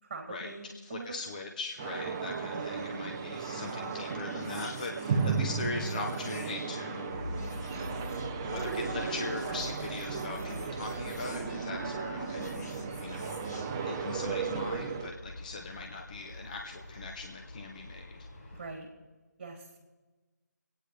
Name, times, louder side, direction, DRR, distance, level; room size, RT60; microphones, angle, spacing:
voice 1, 0.0-1.2 2.4-2.9 18.5-18.9 19.4-19.7, right 3 dB, 30° right, 1 dB, 3.0 m, -43 dB
voice 2, 0.8-7.2 8.3-13.4 13.8-18.3, left 3 dB, 25° left, 1 dB, 0.8 m, -40 dB
sound 1, 1.8-15.1, right 5 dB, 10° right, 0.4 m, -35 dB
sound 2, 3.2-14.6, left 2 dB, 65° left, 2.2 m, -52 dB
Aircraft, 7.1-18.7, left 1 dB, 40° left, 2.7 m, -45 dB
26.0 x 9.4 x 3.4 m, 1.2 s
figure-of-eight pair, 165°, 10 cm